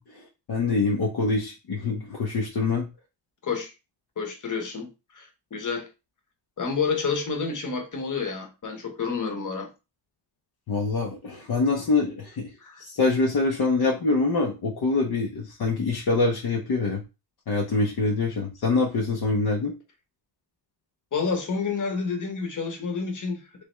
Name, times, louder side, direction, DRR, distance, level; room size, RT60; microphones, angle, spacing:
voice 1, 0.1-2.9 10.7-12.5 12.8-17.0 17.5-19.7, left 3 dB, 60° left, -1 dB, 0.8 m, -25 dB
voice 2, 4.2-4.9 5.1-5.8 6.6-9.7 12.6-12.8 21.1-23.7, left 5 dB, 45° left, 4 dB, 1.1 m, -29 dB
3.4 x 3.4 x 3.1 m, 0.28 s
wide cardioid pair, 135°, 44 cm